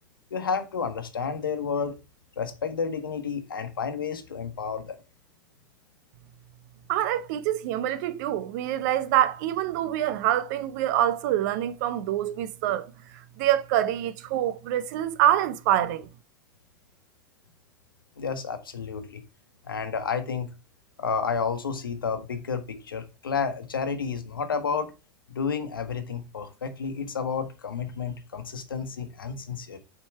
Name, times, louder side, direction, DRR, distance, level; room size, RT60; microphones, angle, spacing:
voice 1, 0.3-2.0 2.4-5.0 18.2-19.2 19.6-20.5 21.0-24.9 25.3-29.8, left 6 dB, 85° left, 1.1 m, -31 dB
voice 2, 6.9-12.9 13.4-16.1, right 12 dB, 55° right, 0.6 m, -25 dB
6.1 x 3.7 x 4.5 m
hypercardioid pair, 100°, 11 cm